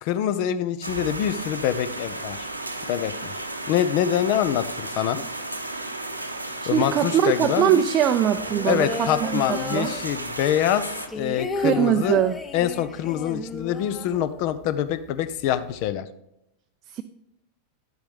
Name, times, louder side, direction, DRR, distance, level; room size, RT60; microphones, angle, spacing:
voice 1, 0.0-2.5 2.9-3.3 3.7-5.2 6.7-7.8 8.7-10.9 11.1-12.2 12.5-16.1, left 10 dB, 45° left, 13 dB, 0.7 m, -25 dB
sound 1, 0.8-11.1, right 2 dB, 85° right, 1.0 m, -33 dB
voice 2, 6.6-9.9 11.6-12.4 16.9-17.0, right 9 dB, 30° right, 7 dB, 0.5 m, -22 dB
sound 2, 8.3-10.5 10.8-14.7 15.0-15.1 15.4-15.9, left 3 dB, 15° left, 1.0 m, -34 dB
9.8 x 8.0 x 3.4 m, 0.83 s
figure-of-eight pair, 90°, 0 cm